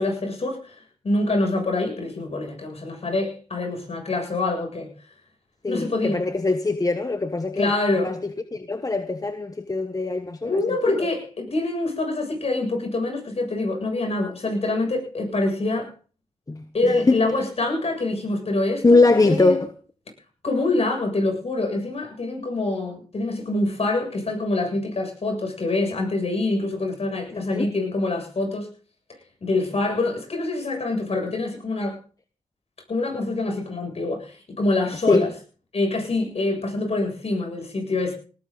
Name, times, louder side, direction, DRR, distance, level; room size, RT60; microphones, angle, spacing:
voice 1, 0.0-4.9 5.7-6.3 7.6-8.1 10.4-15.9 16.7-19.0 19.2-19.6 20.4-28.7 29.4-32.0 32.9-35.3 35.7-38.1, left 2 dB, 50° left, 7.7 m, -25 dB
voice 2, 5.6-7.7 8.0-10.9 16.5-16.6 17.1-17.2 18.8-19.7 27.3-27.7 35.1-35.3, left 3 dB, 25° left, 1.2 m, -22 dB
19.0 x 14.0 x 4.1 m
cardioid pair, 60°, 13 cm